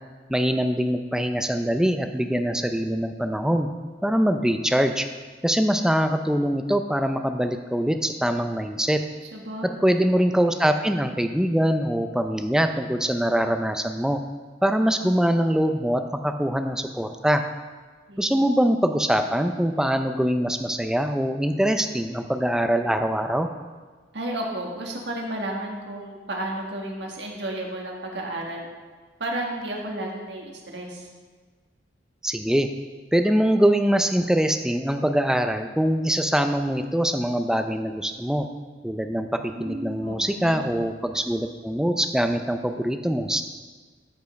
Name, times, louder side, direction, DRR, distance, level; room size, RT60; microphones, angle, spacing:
voice 1, 0.3-3.7 4.0-5.1 5.4-9.0 9.8-14.2 14.6-17.4 18.2-23.5 32.2-32.7 33.1-38.5 38.8-43.4, equal, 5° right, 7 dB, 0.5 m, -23 dB
voice 2, 9.3-10.1 18.1-18.4 24.1-28.7 29.2-31.1 39.4-40.7, right 1 dB, 75° right, 0 dB, 1.8 m, -33 dB
13.0 x 5.4 x 5.2 m, 1.4 s
head